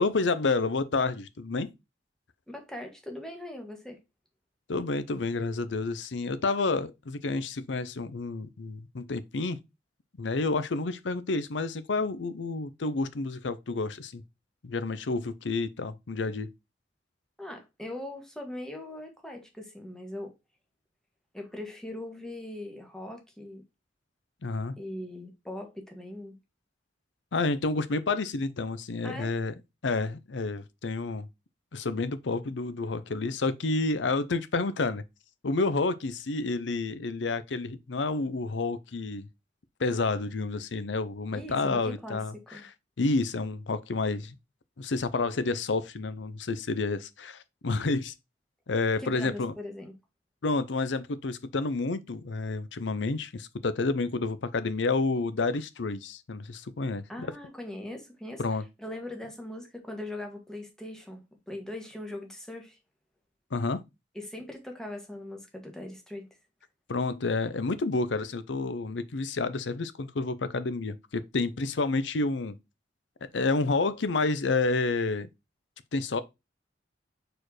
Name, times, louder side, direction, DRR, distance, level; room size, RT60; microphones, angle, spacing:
voice 1, 0.0-1.7 4.7-9.6 10.2-14.2 14.6-16.5 24.4-24.8 27.3-29.5 29.8-31.3 31.7-35.0 35.4-39.3 39.8-42.6 43.0-44.3 44.8-48.1 48.7-49.5 50.4-57.3 58.4-58.6 63.5-63.8 66.9-72.6 73.3-75.3 75.9-76.2, left 3 dB, 90° left, 0.7 m, -29 dB
voice 2, 2.5-4.0 17.4-20.3 21.3-23.6 24.8-26.4 29.0-29.3 41.3-42.7 49.0-49.9 57.1-62.8 64.1-66.3, left 1 dB, 5° left, 1.5 m, -40 dB
4.4 x 4.4 x 4.8 m
head